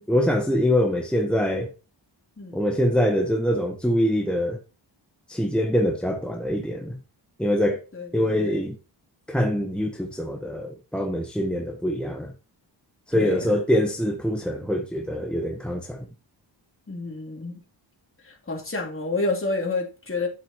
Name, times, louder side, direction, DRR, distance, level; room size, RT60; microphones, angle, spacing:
voice 1, 0.1-1.7 2.5-4.6 5.3-7.0 7.4-7.8 8.1-8.8 9.3-12.3 13.1-16.1, equal, ahead, 1.1 m, -24 dB
voice 2, 7.9-8.6 13.1-13.6 16.9-17.6 18.2-20.3, left 3 dB, 30° left, 3.2 m, -29 dB
10.5 x 7.7 x 2.9 m
wide cardioid pair, 135°, 45 cm